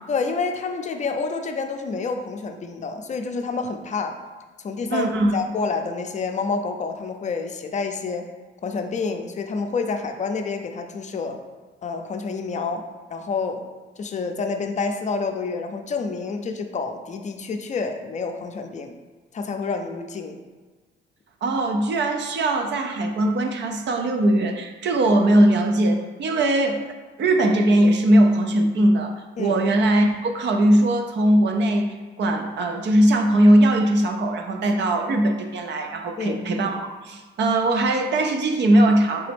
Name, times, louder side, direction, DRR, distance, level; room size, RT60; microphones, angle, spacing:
voice 1, 0.1-4.2 4.6-8.2 8.6-11.4 11.8-12.8 13.1-13.6 14.0-18.9 19.3-20.4 29.4-29.6 36.2-36.5, left 4 dB, 35° left, 5 dB, 0.5 m, -28 dB
voice 2, 4.9-5.4 21.4-26.8 27.2-39.3, right 1 dB, 65° right, 4 dB, 0.6 m, -20 dB
3.9 x 3.4 x 3.4 m, 1.3 s
cardioid pair, 90°, 20 cm